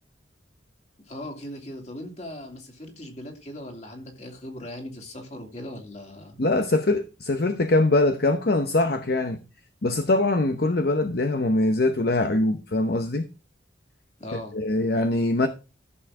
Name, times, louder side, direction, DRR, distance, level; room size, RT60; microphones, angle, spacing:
voice 1, 1.0-6.4 14.2-14.5, left 1 dB, 35° left, 2.8 m, -39 dB
voice 2, 6.4-9.4 9.8-13.3 14.5-15.5, left 2 dB, 55° left, 0.8 m, -23 dB
14.0 x 6.9 x 3.7 m
head